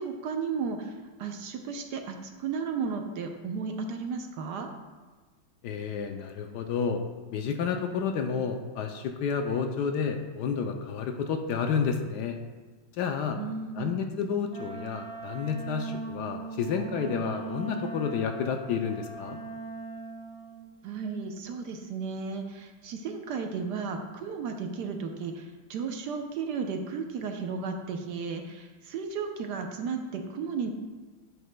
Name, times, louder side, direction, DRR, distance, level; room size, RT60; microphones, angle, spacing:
voice 1, 0.0-4.7 13.3-13.9 20.8-30.7, right 5 dB, 70° right, 4 dB, 1.0 m, -34 dB
voice 2, 5.6-7.0 7.3-12.4 13.0-13.4 13.8-19.4, left 6 dB, 75° left, 5 dB, 0.9 m, -30 dB
Wind instrument woodwind instrument, 14.5-20.6, right 4 dB, 50° right, 1.6 m, -39 dB
9.8 x 7.8 x 2.2 m, 1.3 s
omnidirectional pair, 2.3 m